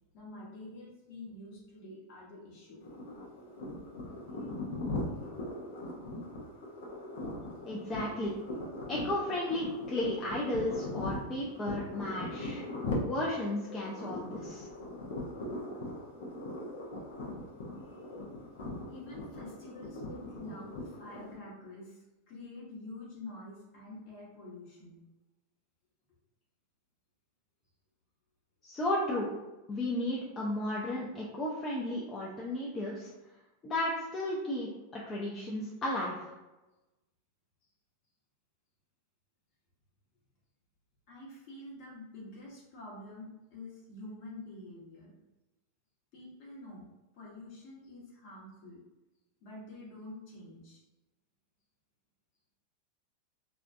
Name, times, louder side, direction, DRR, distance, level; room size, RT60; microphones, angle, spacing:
voice 1, 0.1-2.8 7.5-7.7 17.9-18.0 18.9-25.0 41.1-45.1 46.1-46.8 47.1-48.8 49.4-50.8, left 2 dB, 55° left, -5 dB, 1.1 m, -47 dB
sound 1, 2.8-21.4, left 2 dB, 75° left, 0.6 m, -40 dB
voice 2, 7.6-8.4 8.9-12.6 13.0-14.7 28.6-29.3 29.7-33.1 33.6-36.4, left 1 dB, 25° left, -4 dB, 0.5 m, -34 dB
2.4 x 2.2 x 2.5 m, 1.0 s
hypercardioid pair, 100°, 0 cm